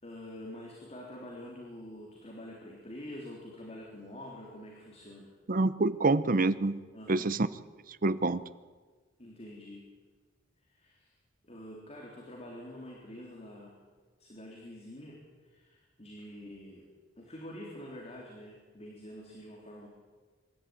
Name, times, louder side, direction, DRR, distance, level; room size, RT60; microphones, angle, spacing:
voice 1, 0.0-5.3 6.9-7.3 9.2-9.9 10.6-11.1 11.4-13.8 14.2-16.8 17.2-19.9, left 1 dB, 35° left, -2 dB, 3.9 m, -46 dB
voice 2, 5.5-6.8 7.1-7.5 8.0-8.4, right 3 dB, 45° right, 15 dB, 0.8 m, -26 dB
25.5 x 13.0 x 9.4 m, 1.4 s
head